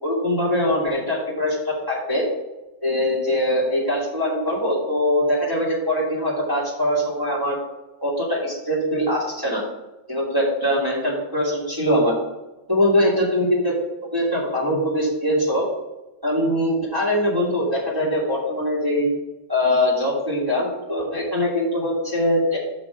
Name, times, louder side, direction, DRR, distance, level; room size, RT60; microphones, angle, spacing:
voice 1, 0.0-2.2 2.8-7.5 8.0-9.6 10.1-12.2 12.7-13.7 14.1-15.6 16.2-19.1 19.5-22.6, left 1 dB, 10° right, -6 dB, 1.2 m, -22 dB
6.5 x 6.1 x 4.9 m, 1.0 s
omnidirectional pair, 4.5 m